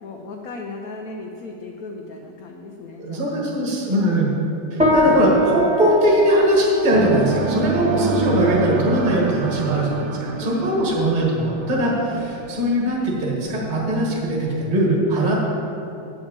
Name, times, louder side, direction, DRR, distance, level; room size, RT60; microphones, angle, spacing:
voice 1, 0.0-3.5 4.7-5.3 10.3-11.1, left 2 dB, 65° left, 1 dB, 0.9 m, -36 dB
voice 2, 3.0-4.3 4.7-15.3, right 1 dB, 25° right, -3 dB, 1.5 m, -20 dB
sound 1, 4.8-14.4, left 1 dB, 5° right, 1.2 m, -26 dB
sound 2, 6.9-12.8, right 5 dB, 80° right, 1.5 m, -27 dB
8.3 x 6.3 x 8.1 m, 2.8 s
omnidirectional pair, 2.3 m